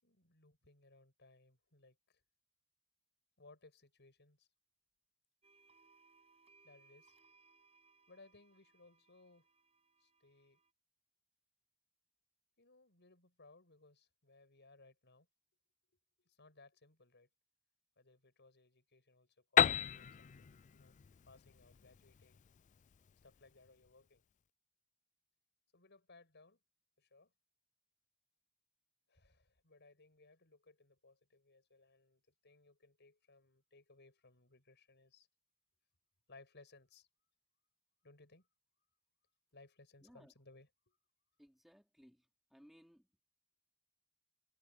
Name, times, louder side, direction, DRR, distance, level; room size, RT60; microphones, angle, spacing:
voice 1, 0.0-2.2 3.4-4.5 6.6-7.2 8.1-9.5 10.0-10.6 12.6-15.3 16.2-17.3 18.0-21.0 21.3-22.4 23.2-24.2 25.7-26.6 27.0-27.3 29.1-35.3 36.3-37.1 38.0-38.5 39.5-41.0, left 3 dB, 50° left, 6.9 m, -64 dB
sound 1, 5.4-10.7, right 4 dB, 30° right, 7.0 m, -69 dB
Piano, 19.6-23.2, left 9 dB, 35° left, 0.3 m, -34 dB
voice 2, 40.0-40.3 41.4-42.3 42.5-43.1, equal, ahead, 4.0 m, -63 dB
head